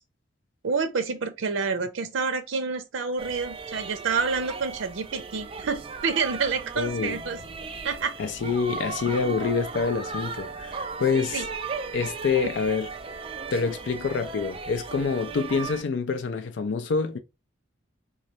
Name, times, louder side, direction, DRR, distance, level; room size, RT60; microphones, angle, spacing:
voice 1, 0.6-7.4 7.8-8.1 11.3-11.4 12.4-12.5, right 5 dB, 85° right, 0.6 m, -28 dB
sound 1, 3.2-15.8, right 4 dB, 30° right, 0.4 m, -36 dB
voice 2, 6.8-7.2 8.2-11.4 11.9-12.9 13.5-17.2, left 5 dB, 70° left, 0.4 m, -26 dB
3.7 x 3.1 x 2.7 m
head